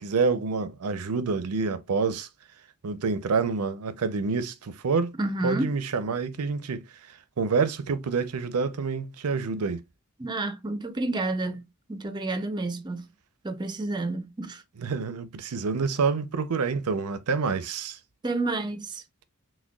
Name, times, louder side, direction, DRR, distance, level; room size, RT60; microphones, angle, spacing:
voice 1, 0.0-2.3 2.8-5.2 5.4-9.8 14.8-18.0, right 4 dB, 85° right, 0.6 m, -27 dB
voice 2, 5.2-5.7 10.2-13.1 13.4-14.6 18.2-19.0, right 2 dB, 20° right, 0.4 m, -30 dB
6.1 x 2.2 x 2.3 m
head